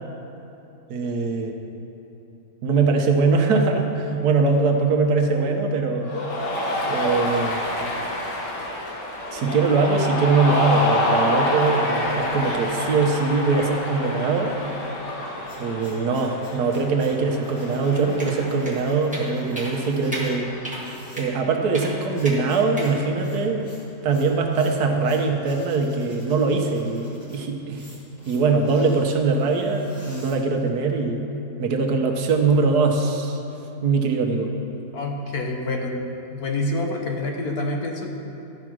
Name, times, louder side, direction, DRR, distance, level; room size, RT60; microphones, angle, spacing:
voice 1, 0.9-1.5 2.6-6.1 6.9-7.6 9.3-14.5 15.6-20.5 21.2-23.6 24.0-27.9 28.3-31.2 31.6-33.4 33.8-34.5, right 4 dB, 75° right, 3 dB, 1.3 m, -22 dB
Cheering, 6.0-20.9, left 1 dB, 80° left, 1.8 m, -28 dB
sound 1, 15.3-31.0, equal, 35° left, 2.8 m, -50 dB
sound 2, 18.2-18.4 18.7-18.8 19.1-19.3 19.6-19.7 20.1-20.3 20.6-20.8 21.2-21.3 21.7-21.9 22.2-22.4 22.8-22.9, right 1 dB, 5° right, 1.2 m, -33 dB
voice 2, 34.9-36.0 36.3-38.1, left 2 dB, 65° left, 2 dB, 1.3 m, -27 dB
12.5 x 4.9 x 6.1 m, 3.0 s
omnidirectional pair, 1.8 m